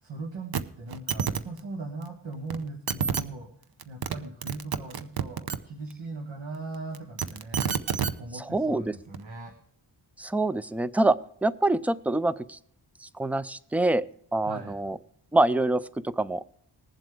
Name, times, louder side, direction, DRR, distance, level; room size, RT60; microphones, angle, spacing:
voice 1, 0.0-3.5 3.8-7.7 8.2-9.5 14.4-14.8, right 3 dB, 75° right, 1 dB, 1.9 m, -39 dB
sound 1, 0.5-0.6 0.9-1.4 2.5-2.6 2.9-3.2 3.8-4.2 4.4-5.6 6.9-8.1 9.1-9.2, right 7 dB, 55° right, 0.8 m, -28 dB
voice 2, 8.3-8.9 10.2-11.2 11.4-12.6 13.0-14.0 14.3-15.0 15.3-16.4, right 2 dB, 5° right, 16 dB, 0.3 m, -25 dB
21.0 x 7.5 x 3.4 m, 0.66 s
wide cardioid pair, 90°, 45 cm